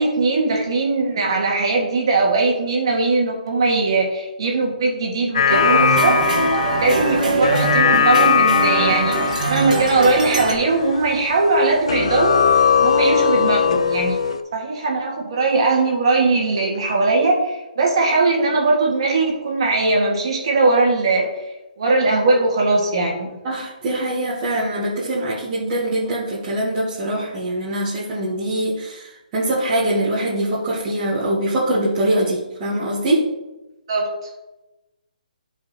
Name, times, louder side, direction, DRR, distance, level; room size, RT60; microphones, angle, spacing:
voice 1, 0.0-6.2 6.8-9.2 9.5-12.4 12.8-14.2 14.5-21.3 21.8-23.3 33.9-34.1, right 3 dB, 35° right, -1 dB, 1.8 m, -19 dB
sound 1, 5.3-11.6 11.9-14.4, left 7 dB, 45° left, 0.4 m, -20 dB
sound 2, 5.5-10.5, right 3 dB, 60° right, 1.6 m, -22 dB
voice 2, 23.4-33.2, right 1 dB, 15° right, -9 dB, 1.2 m, -23 dB
13.0 x 5.0 x 2.9 m, 1.0 s
hypercardioid pair, 175°, 5 cm